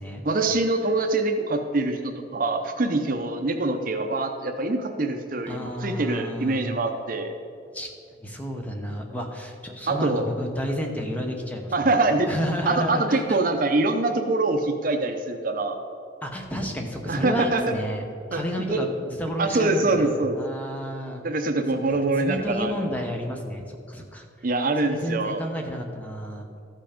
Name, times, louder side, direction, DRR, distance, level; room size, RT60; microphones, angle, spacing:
voice 1, 0.2-7.3 9.9-10.2 11.7-12.3 12.7-15.8 17.1-17.7 18.3-18.4 18.7-18.8 19.4-20.4 21.2-22.7 24.4-25.4, right 2 dB, 50° right, 6 dB, 0.6 m, -24 dB
voice 2, 5.5-6.6 7.7-7.9 8.2-12.0 12.3-13.4 16.2-18.0 18.3-21.2 22.2-24.2 24.8-26.5, equal, 10° left, 2 dB, 0.9 m, -31 dB
13.0 x 5.5 x 5.1 m, 2.4 s
head